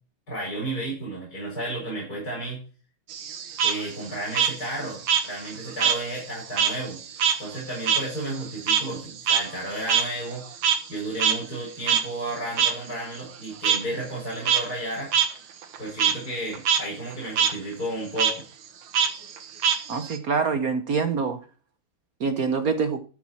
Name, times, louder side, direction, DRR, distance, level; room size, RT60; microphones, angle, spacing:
voice 1, 0.3-2.6 3.6-7.0 7.4-10.4 10.9-15.1 15.8-18.4, right 1 dB, 45° left, -5 dB, 5.0 m, -33 dB
Frog, 3.1-6.0 6.3-11.0 11.2-11.3 11.9-12.0 12.6-12.7 13.6-13.8 14.3-14.6 15.1-15.3 15.6-16.1 16.5-16.8 17.1-17.5 18.2-18.3 18.9-20.2, right 8 dB, 75° right, 2.0 m, -23 dB
voice 2, 19.9-21.4 22.2-23.0, right 5 dB, 55° right, 9 dB, 1.1 m, -25 dB
13.0 x 6.3 x 4.3 m, 0.38 s
omnidirectional pair, 2.4 m